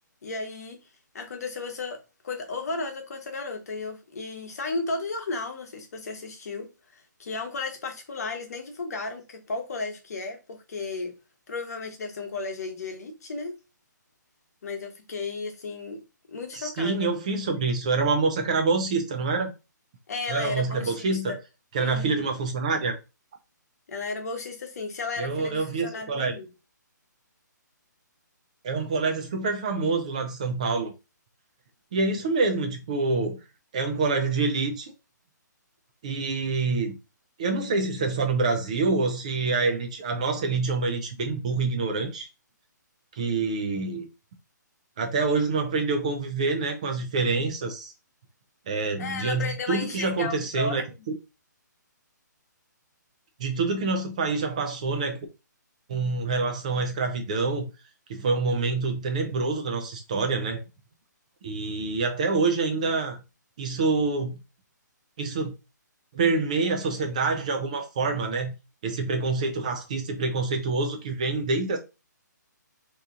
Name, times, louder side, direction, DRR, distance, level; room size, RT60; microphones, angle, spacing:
voice 1, 0.2-0.8 1.1-2.0 2.2-11.1 11.5-13.6 14.6-16.0 16.3-17.1 20.1-21.4 21.8-22.2 23.9-26.5 49.0-50.8, left 3 dB, 55° left, 1.0 m, -34 dB
voice 2, 16.5-19.5 20.3-21.4 21.7-22.9 25.2-26.3 28.6-30.9 31.9-33.4 33.7-34.9 36.0-37.0 37.4-42.3 43.1-44.1 45.0-47.9 48.7-50.8 53.4-55.2 55.9-57.7 58.1-60.6 61.4-63.2 63.6-64.4 65.2-65.5 66.1-68.5 68.8-71.8, right 3 dB, 20° right, 0.3 m, -26 dB
2.8 x 2.4 x 3.6 m
hypercardioid pair, 165°, 10 cm